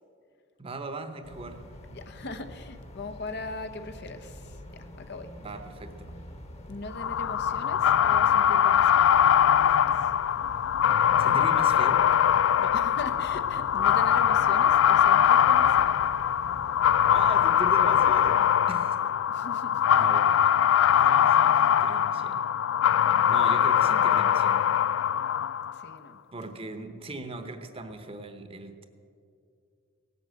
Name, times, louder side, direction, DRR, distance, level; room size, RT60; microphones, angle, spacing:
voice 1, 0.6-1.6 5.4-6.2 11.2-12.0 17.1-19.0 19.9-20.3 20.9-22.4 23.2-24.7 26.3-28.8, right 2 dB, 30° right, 8 dB, 1.0 m, -39 dB
sound 1, 1.2-18.4, equal, 35° left, 1.3 m, -46 dB
voice 2, 1.9-5.3 6.7-9.1 9.6-10.1 12.6-16.0 19.3-19.8 25.7-26.2, left 3 dB, 60° left, 9 dB, 0.9 m, -40 dB
sound 2, 7.0-25.9, left 9 dB, 75° left, 0.3 m, -22 dB
17.5 x 8.1 x 7.7 m, 2.3 s
head